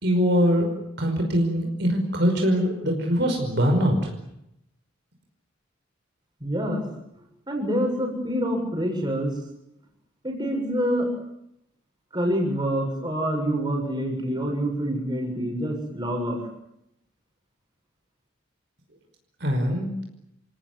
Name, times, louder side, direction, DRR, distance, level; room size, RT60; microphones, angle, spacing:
voice 1, 0.0-0.7 1.0-4.1 19.4-19.9, equal, 55° right, 3 dB, 5.4 m, -22 dB
voice 2, 6.4-6.8 7.5-9.3 10.2-11.1 12.1-16.4, equal, 20° right, 1 dB, 7.3 m, -26 dB
29.0 x 18.5 x 9.7 m, 0.82 s
head